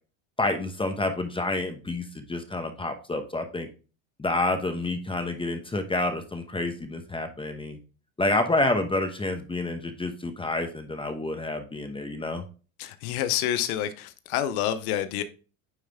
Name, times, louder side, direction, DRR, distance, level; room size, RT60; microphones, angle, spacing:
voice 1, 0.4-3.7 4.2-7.8 8.2-12.4, left 2 dB, 10° left, 0.9 m, -28 dB
voice 2, 12.8-15.2, left 11 dB, 85° left, 0.9 m, -28 dB
9.4 x 3.3 x 3.4 m
supercardioid pair, 105°, 43 cm